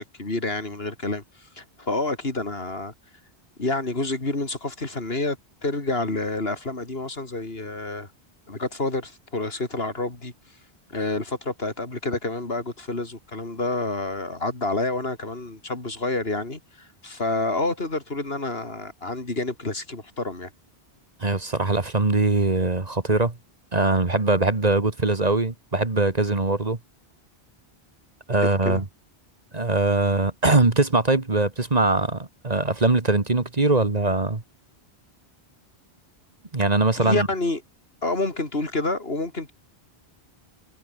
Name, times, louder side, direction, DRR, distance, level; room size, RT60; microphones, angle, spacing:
voice 1, 0.0-2.9 3.6-8.1 8.5-10.3 10.9-20.5 28.6-28.8 37.0-37.6 38.0-39.5, left 2 dB, 70° left, 3.8 m, -28 dB
voice 2, 21.2-23.3 23.7-26.8 28.3-28.8 29.5-34.4 36.5-37.3, right 2 dB, 40° right, 1.9 m, -22 dB
omnidirectional pair, 1.1 m